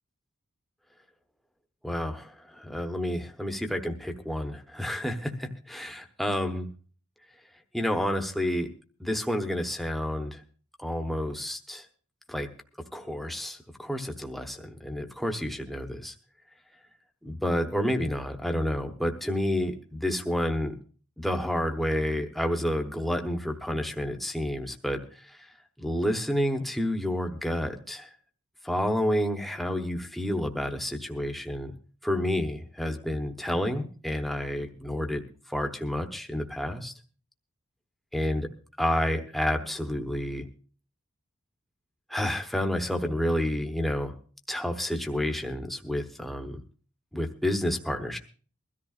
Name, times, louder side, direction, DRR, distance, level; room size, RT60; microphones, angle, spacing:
voice 1, 1.8-6.7 7.7-8.7 9.0-10.4 10.8-11.9 12.3-12.5 12.9-16.1 17.2-20.8 21.2-25.4 25.8-28.1 28.6-31.7 32.0-35.2 35.5-36.9 38.1-38.5 38.8-40.5 42.1-44.1 44.5-46.6 47.1-48.2, left 1 dB, ahead, 4 dB, 0.9 m, -29 dB
22.0 x 13.5 x 2.4 m, 0.41 s
head